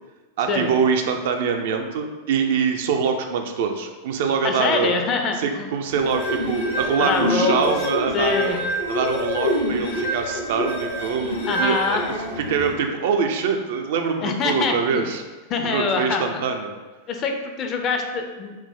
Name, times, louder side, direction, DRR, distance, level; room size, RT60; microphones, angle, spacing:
voice 1, 0.4-4.9 5.4-8.5 8.9-11.8 12.4-15.2 15.6-16.7, right 6 dB, 55° right, 4 dB, 0.3 m, -24 dB
voice 2, 4.4-5.7 7.0-7.7 8.1-8.6 11.5-12.0 14.2-15.1 15.5-16.2 17.1-18.6, left 4 dB, 30° left, 4 dB, 0.4 m, -24 dB
sound 1, 5.9-12.7, equal, 60° left, 0.8 m, -26 dB
4.4 x 2.0 x 3.5 m, 1.2 s
figure-of-eight pair, 90°, 0 cm